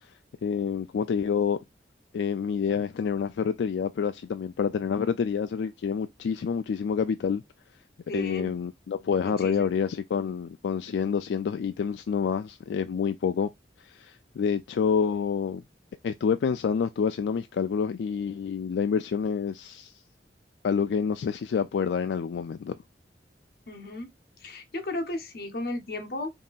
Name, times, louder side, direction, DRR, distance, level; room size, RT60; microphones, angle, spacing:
voice 1, 0.4-1.6 2.1-7.4 8.1-13.5 13.8-15.6 16.0-19.9 20.6-22.7, left 6 dB, 85° left, 0.3 m, -28 dB
voice 2, 8.1-8.5 9.2-9.7 23.7-24.1 24.4-26.3, left 2 dB, 55° left, 1.1 m, -34 dB
5.2 x 2.8 x 2.4 m
head